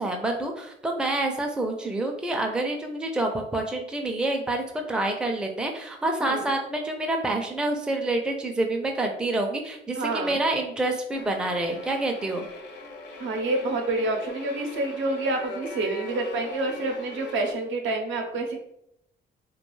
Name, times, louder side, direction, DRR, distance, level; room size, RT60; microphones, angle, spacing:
voice 1, 0.0-12.4, right 2 dB, 5° right, 2 dB, 0.4 m, -27 dB
voice 2, 9.9-10.4 13.2-18.6, right 2 dB, 75° right, 2 dB, 0.6 m, -28 dB
sound 1, 11.1-17.5, left 3 dB, 60° left, 0.5 m, -40 dB
2.3 x 2.2 x 3.0 m, 0.76 s
cardioid pair, 90°, 20 cm